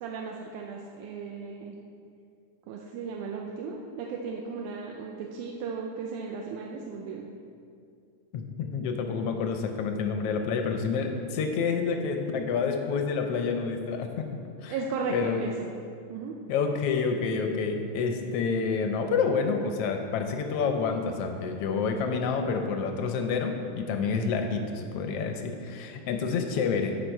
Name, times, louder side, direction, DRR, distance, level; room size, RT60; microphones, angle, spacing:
voice 1, 0.0-1.8 2.7-7.3 14.7-15.5 16.1-16.3, right 5 dB, 85° right, 0 dB, 2.2 m, -36 dB
voice 2, 8.3-14.3 14.6-14.8 15.1-15.5 16.5-27.0, left 5 dB, 75° left, 4 dB, 1.4 m, -28 dB
15.0 x 5.3 x 4.5 m, 2.4 s
omnidirectional pair, 3.5 m